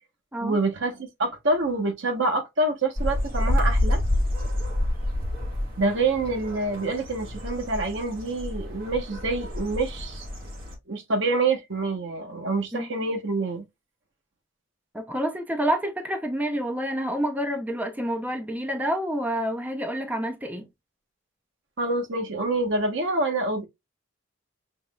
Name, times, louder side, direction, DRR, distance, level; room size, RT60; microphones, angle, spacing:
voice 1, 0.4-4.0 5.8-10.2 10.9-13.6 21.8-23.6, right 2 dB, 65° right, 1.1 m, -26 dB
sound 1, 2.9-10.7, left 1 dB, 50° right, 1.5 m, -28 dB
voice 2, 14.9-20.7, equal, 10° right, 0.6 m, -28 dB
5.7 x 3.2 x 2.3 m
head